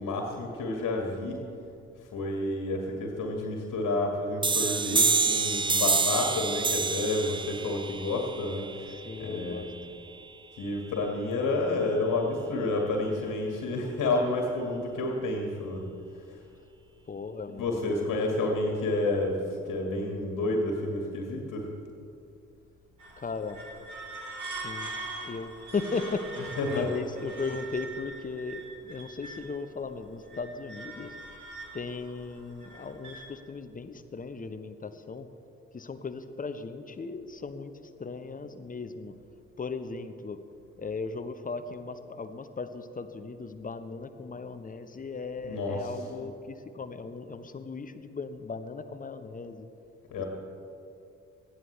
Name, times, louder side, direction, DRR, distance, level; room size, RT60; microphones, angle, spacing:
voice 1, 0.0-1.4 2.1-8.9 9.2-9.7 10.6-15.9 17.6-19.4 19.7-21.7 26.6-26.9 45.4-45.9 50.1-50.3, left 2 dB, 50° left, 1 dB, 1.9 m, -30 dB
sound 1, 4.4-9.8, right 4 dB, 15° right, 0.5 m, -28 dB
voice 2, 8.9-9.7 17.1-18.1 23.2-23.6 24.4-24.9 25.2-31.2 31.7-35.3 35.7-39.2 39.6-40.4 40.8-49.7 50.2-50.3, left 4 dB, 20° left, 10 dB, 0.9 m, -37 dB
sound 2, 23.0-29.6 30.0-33.3, right 2 dB, 55° right, 2.6 m, -42 dB
18.5 x 14.0 x 3.3 m, 2.6 s
figure-of-eight pair, 40°, 38 cm